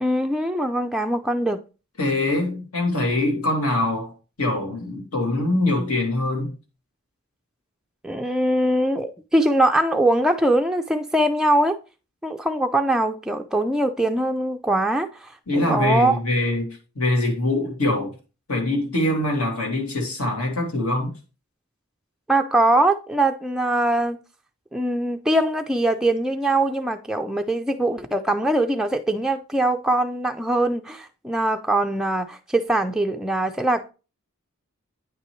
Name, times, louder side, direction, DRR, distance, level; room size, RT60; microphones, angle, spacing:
voice 1, 0.0-1.6 8.0-11.8 12.2-16.2 22.3-24.2 24.7-33.9, right 1 dB, 5° right, 0.3 m, -22 dB
voice 2, 2.0-4.1 4.4-6.5 15.5-18.1 18.5-21.1, left 2 dB, 80° left, 2.5 m, -23 dB
9.2 x 5.5 x 3.1 m
head